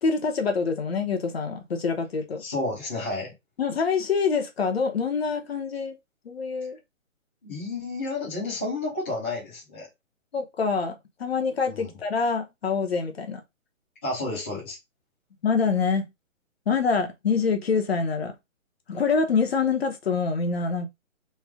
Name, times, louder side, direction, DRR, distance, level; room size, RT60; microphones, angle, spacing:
voice 1, 0.0-2.4 3.6-6.0 6.3-6.8 10.3-13.4 15.4-16.1 16.7-18.3 18.9-20.9, left 5 dB, 50° left, 0.8 m, -25 dB
voice 2, 2.4-3.3 7.4-9.9 11.7-11.9 14.0-14.8, left 2 dB, 10° left, 0.6 m, -31 dB
3.2 x 2.3 x 3.5 m
hypercardioid pair, 165°, 40 cm